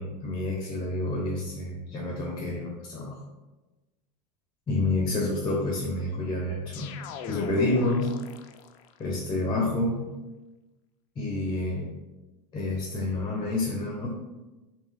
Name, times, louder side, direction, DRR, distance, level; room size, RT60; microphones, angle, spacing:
voice 1, 0.0-3.2 4.7-6.9 7.3-8.1 9.0-10.0 11.2-11.9 12.5-14.1, left 2 dB, 20° left, -1 dB, 0.8 m, -28 dB
sound 1, 6.7-9.0, left 7 dB, 55° left, 0.4 m, -39 dB
3.4 x 2.9 x 3.3 m, 1.1 s
hypercardioid pair, 95°, 21 cm